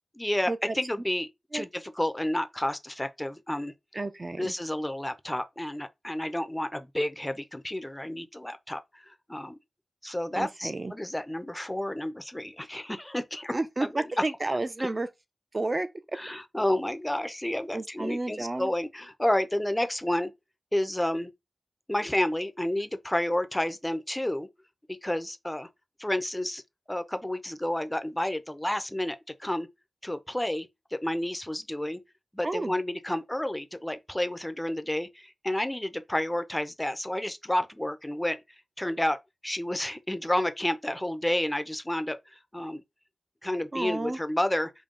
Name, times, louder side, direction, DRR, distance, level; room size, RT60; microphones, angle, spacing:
voice 1, 0.2-3.7 4.4-8.8 9.1-9.6 10.0-14.1 16.1-20.3 20.7-21.3 21.9-24.5 24.9-25.7 26.0-26.6 26.9-29.7 30.0-32.0 32.3-38.4 38.8-39.2 39.4-42.8 43.4-44.7, left 1 dB, 10° left, 0.6 m, -30 dB
voice 2, 3.9-4.5 10.4-10.9 13.5-15.1 15.5-15.9 17.7-18.7 32.4-32.7 43.7-44.2, right 2 dB, 35° right, 0.6 m, -31 dB
5.2 x 2.2 x 3.7 m
wide cardioid pair, 90°, 0 cm